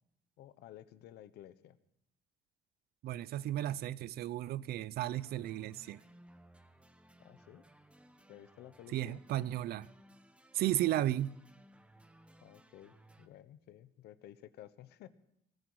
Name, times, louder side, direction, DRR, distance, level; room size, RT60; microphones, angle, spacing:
voice 1, 0.4-1.8 7.2-7.6 8.3-9.2 12.4-15.1, left 12 dB, 75° left, 1.0 m, -54 dB
voice 2, 3.0-6.0 8.9-9.9 10.5-11.4, right 13 dB, 65° right, 0.6 m, -34 dB
sound 1, 5.0-13.3, equal, 5° right, 1.1 m, -61 dB
20.0 x 14.0 x 4.8 m
cardioid pair, 110°, 17 cm